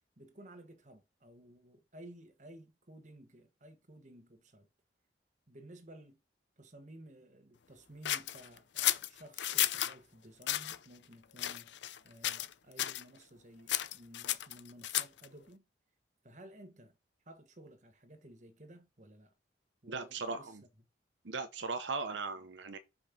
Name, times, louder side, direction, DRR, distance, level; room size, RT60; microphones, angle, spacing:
voice 1, 0.2-4.7 5.5-6.2 6.6-15.6 16.2-17.0 17.2-19.3 19.8-20.6, right 1 dB, 40° right, 1.4 m, -55 dB
sound 1, 8.0-9.9 10.4-10.8 11.4-12.0 12.2-12.5 12.8-13.0 13.7-15.3, left 13 dB, 75° left, 0.6 m, -33 dB
voice 2, 19.9-20.6 21.2-22.8, right 4 dB, 80° right, 0.9 m, -38 dB
5.3 x 5.2 x 6.0 m
head